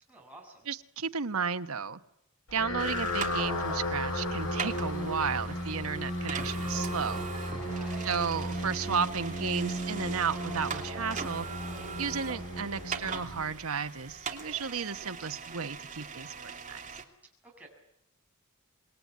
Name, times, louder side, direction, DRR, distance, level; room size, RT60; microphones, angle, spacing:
voice 1, 0.1-0.7 7.6-8.1 17.4-17.7, right 2 dB, 5° right, -1 dB, 7.1 m, -50 dB
voice 2, 0.7-2.0 2.5-7.3 8.0-11.5 12.0-16.8, right 6 dB, 80° right, 9 dB, 1.1 m, -33 dB
sound 1, 2.5-14.0, left 1 dB, 75° left, 5.5 m, -35 dB
sound 2, 2.8-17.0, right 5 dB, 35° right, 2.8 m, -41 dB
26.5 x 21.5 x 9.5 m, 0.78 s
head